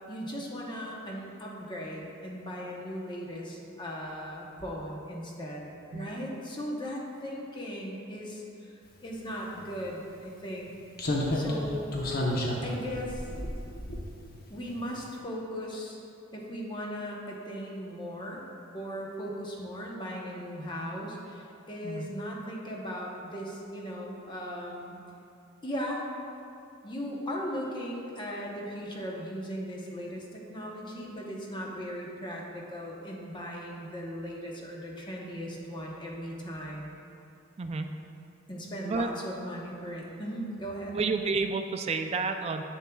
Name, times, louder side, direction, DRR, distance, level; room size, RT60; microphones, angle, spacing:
voice 1, 0.1-5.7 5.9-10.7 11.3-12.0 12.6-13.3 14.5-16.0 16.3-18.4 18.7-25.0 25.6-26.0 26.8-37.0 38.5-41.0, equal, 25° left, -2 dB, 0.8 m, -38 dB
Slam, 9.6-9.7 11.0-14.5 14.8-15.0, left 1 dB, 50° left, 0.8 m, -31 dB
voice 2, 37.6-37.9 38.9-39.1 40.9-42.6, right 4 dB, 30° right, 6 dB, 0.3 m, -30 dB
7.2 x 7.0 x 2.3 m, 2.6 s
head